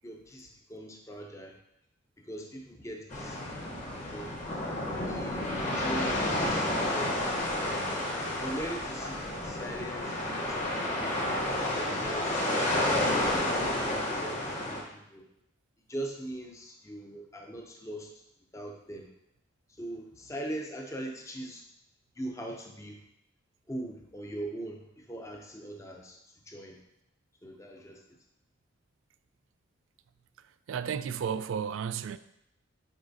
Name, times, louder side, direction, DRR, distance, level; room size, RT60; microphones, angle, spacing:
voice 1, 0.0-1.6 2.2-3.5 4.1-4.4 5.0-7.9 8.4-12.4 13.0-15.2 15.9-18.1 18.5-19.1 19.8-21.6 22.2-23.0 23.7-26.2 26.5-26.8 27.4-28.2, right 1 dB, 15° left, 0.6 m, -41 dB
sound 1, 3.1-14.8, left 1 dB, 40° left, 1.1 m, -30 dB
voice 2, 30.7-32.2, right 7 dB, 80° right, 0.3 m, -33 dB
7.9 x 4.7 x 2.7 m
head